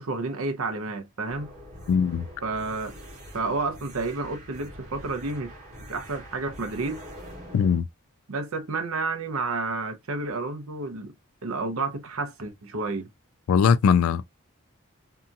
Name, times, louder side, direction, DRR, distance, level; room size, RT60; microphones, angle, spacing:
voice 1, 0.0-1.5 2.4-2.9 3.3-5.5 5.9-7.0 8.3-11.1 11.4-13.1, right 3 dB, 85° right, 0.7 m, -30 dB
sound 1, 1.3-7.8, equal, 35° right, 1.1 m, -44 dB
voice 2, 1.9-2.3 7.5-7.9 13.5-14.4, left 6 dB, 90° left, 0.3 m, -21 dB
2.8 x 2.3 x 2.5 m
head